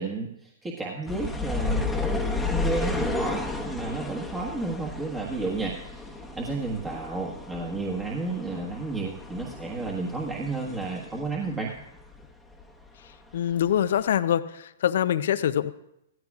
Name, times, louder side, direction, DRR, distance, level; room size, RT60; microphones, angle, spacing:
voice 1, 0.0-11.7, right 3 dB, 15° right, -3 dB, 1.5 m, -32 dB
sound 1, 1.1-12.3 12.5-13.6 14.1-14.2, left 3 dB, 5° left, 1.1 m, -33 dB
voice 2, 13.3-15.7, left 10 dB, 65° left, 15 dB, 0.5 m, -24 dB
16.0 x 14.0 x 2.4 m, 0.82 s
hypercardioid pair, 120°, 0 cm